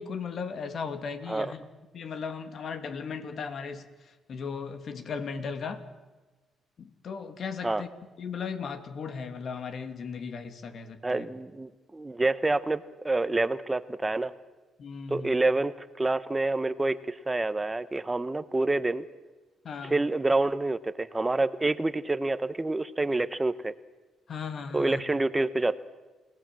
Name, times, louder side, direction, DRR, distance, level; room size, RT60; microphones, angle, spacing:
voice 1, 0.0-1.6 1.9-3.8 4.3-5.8 6.8-7.9 8.2-11.2 14.8-15.3 19.6-20.0 24.3-25.0, left 5 dB, 55° left, 9 dB, 2.5 m, -36 dB
voice 2, 11.0-14.3 15.1-19.0 19.8-23.7 24.7-25.7, right 2 dB, 15° right, 13 dB, 1.0 m, -27 dB
29.5 x 18.5 x 7.7 m, 1.2 s
cardioid pair, 90°, 0 cm